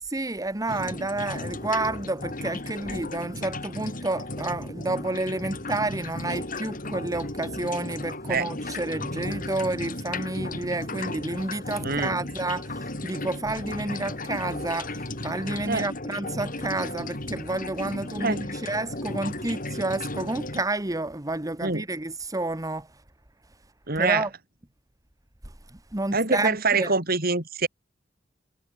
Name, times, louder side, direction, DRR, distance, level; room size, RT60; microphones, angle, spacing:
voice 1, 0.0-22.9 23.9-24.3 25.4-25.5 25.9-26.9, right 2 dB, 20° right, 1.3 m, -30 dB
sound 1, 0.7-20.6, left 2 dB, 45° left, 7.1 m, -35 dB
voice 2, 11.8-12.2 15.7-15.9 18.2-18.4 21.6-21.8 23.9-24.3 26.1-27.7, right 4 dB, 55° right, 6.1 m, -25 dB
head